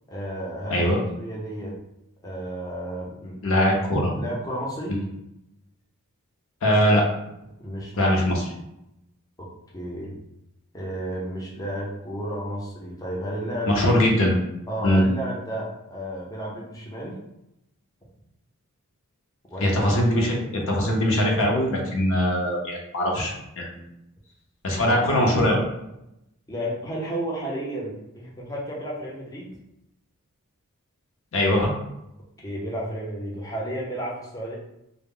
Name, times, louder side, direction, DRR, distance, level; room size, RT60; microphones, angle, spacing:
voice 1, 0.1-0.9 1.2-1.8 2.2-3.6 4.1-5.0 6.7-6.8 7.6-8.1 9.4-9.5 9.7-10.1 10.7-13.8 14.7-17.2 19.5-19.8 24.9-25.1 26.5-29.5 32.4-34.5, right 1 dB, 15° left, -5 dB, 0.5 m, -32 dB
voice 2, 3.4-4.1 4.9-5.0 6.6-7.0 8.0-8.4 13.7-14.3 14.8-15.0 19.6-23.8 24.6-25.6 31.3-31.7, left 1 dB, 65° left, -1 dB, 0.6 m, -21 dB
2.0 x 2.0 x 3.5 m, 0.85 s
head